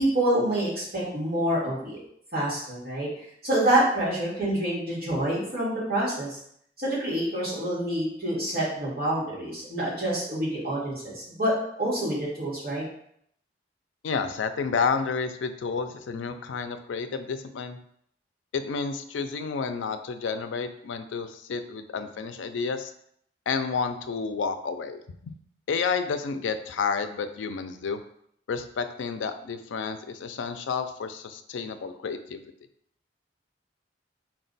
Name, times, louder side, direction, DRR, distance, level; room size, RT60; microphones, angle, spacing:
voice 1, 0.0-2.0 2.3-3.1 3.4-6.4 6.8-11.5 11.8-12.8, right 1 dB, 55° right, -7 dB, 1.6 m, -27 dB
voice 2, 14.0-17.8 18.5-22.9 23.5-25.3 25.7-28.0 28.5-32.4, left 5 dB, 85° left, 9 dB, 0.4 m, -30 dB
4.5 x 2.2 x 3.9 m, 0.69 s
head